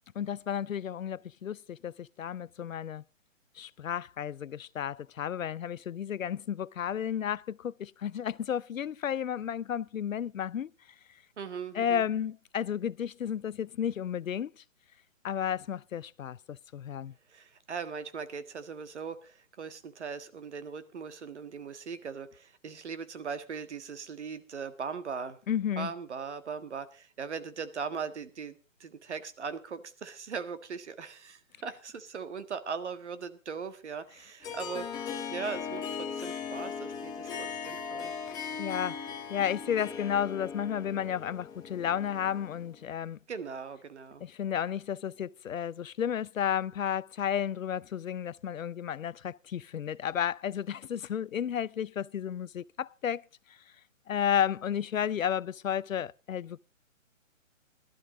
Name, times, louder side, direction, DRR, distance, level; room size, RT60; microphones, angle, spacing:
voice 1, 0.2-3.0 3.6-10.7 11.7-14.5 15.2-17.1 25.5-25.9 38.6-39.0 39.3-43.2 44.2-53.3 54.1-56.6, left 9 dB, 75° left, 0.6 m, -32 dB
voice 2, 11.4-12.1 17.3-25.4 25.8-38.1 43.3-44.2, right 6 dB, 55° right, 1.6 m, -39 dB
Harp, 34.4-42.9, left 6 dB, 10° left, 1.1 m, -39 dB
16.5 x 12.0 x 3.8 m
figure-of-eight pair, 145°, 40 cm